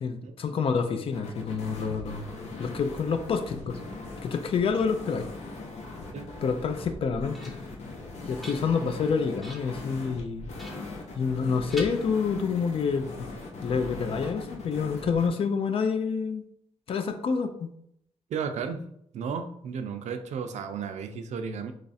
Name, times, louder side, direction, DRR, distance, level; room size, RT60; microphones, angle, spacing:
voice 1, 0.0-2.2 2.6-3.8 4.2-5.3 6.4-7.5 8.3-10.5 11.2-13.1 13.6-16.4 16.9-17.7, left 5 dB, 55° left, 8 dB, 0.4 m, -28 dB
sound 1, 1.1-15.3, left 3 dB, 75° left, 0.8 m, -40 dB
sound 2, 6.9-7.8 8.2-9.0 9.4-9.8 10.6-11.4 11.7-12.7, equal, ahead, 0.5 m, -45 dB
voice 2, 18.3-18.8 19.1-21.7, right 6 dB, 85° right, 7 dB, 0.4 m, -33 dB
3.2 x 2.4 x 4.0 m, 0.71 s
wide cardioid pair, 170°, 12 cm